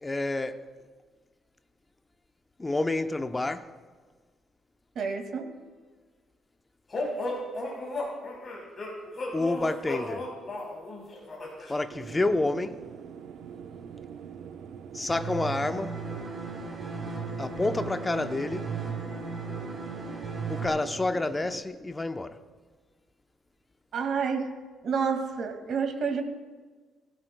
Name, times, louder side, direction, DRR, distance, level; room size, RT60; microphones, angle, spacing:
voice 1, 0.0-0.7 2.6-3.7 9.3-10.3 11.7-12.8 14.9-16.0 17.4-18.7 20.5-22.4, left 2 dB, 15° left, 0.7 m, -29 dB
voice 2, 5.0-5.5 23.9-24.5 24.8-26.2, right 5 dB, 60° right, 2.1 m, -29 dB
sound 1, 6.9-11.7, left 2 dB, 30° left, 5.6 m, -34 dB
sound 2, 11.9-21.6, right 8 dB, 75° right, 0.8 m, -44 dB
sound 3, 15.1-20.7, right 4 dB, 25° right, 3.8 m, -36 dB
24.5 x 16.5 x 2.3 m
cardioid pair, 130°, 0 cm